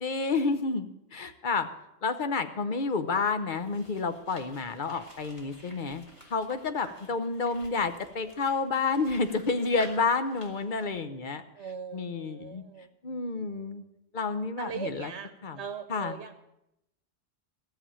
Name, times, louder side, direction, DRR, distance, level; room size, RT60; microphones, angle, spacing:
voice 1, 0.0-1.7 2.0-6.0 6.3-11.4 11.9-12.6 13.0-13.8 14.1-15.1 15.4-15.6 15.9-16.2, left 4 dB, 50° left, 9 dB, 1.0 m, -30 dB
sound 1, 3.1-10.9, equal, 25° left, 2.4 m, -52 dB
voice 2, 11.5-12.9 14.6-16.5, right 6 dB, 75° right, 10 dB, 1.1 m, -40 dB
14.0 x 7.1 x 8.8 m, 0.86 s
omnidirectional pair, 1.1 m